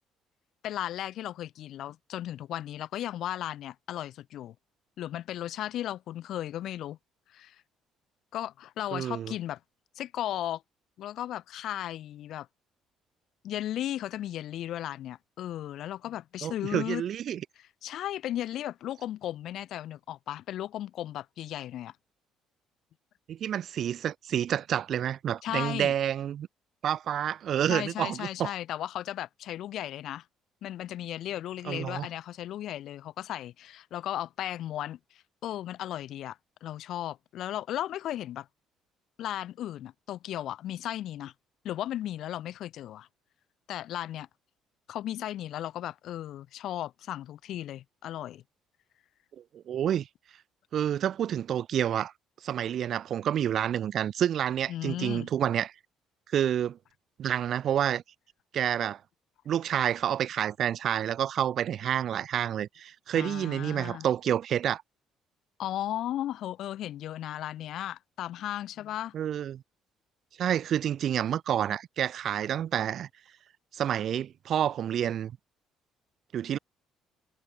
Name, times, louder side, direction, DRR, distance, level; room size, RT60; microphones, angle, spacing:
voice 1, 0.6-4.5 5.0-7.0 7.3-7.6 8.3-9.6 9.9-10.6 11.0-12.5 13.4-17.0 17.6-21.9 25.4-25.9 27.7-30.2 30.6-38.5 39.2-41.3 41.6-43.1 43.7-44.3 44.9-48.4 54.7-55.3 63.1-64.1 65.6-69.1, left 12 dB, 70° left, 6.7 m, -35 dB
voice 2, 8.9-9.3 16.4-17.4 23.3-26.5 26.8-28.5 31.6-32.1 49.7-50.1 50.7-52.1 52.4-55.7 56.3-56.8 57.2-58.0 58.5-59.0 59.5-64.8 69.1-69.6 70.4-73.1 73.7-75.3 76.3-76.6, right 10 dB, 60° right, 4.4 m, -29 dB
supercardioid pair, 75°, 0 cm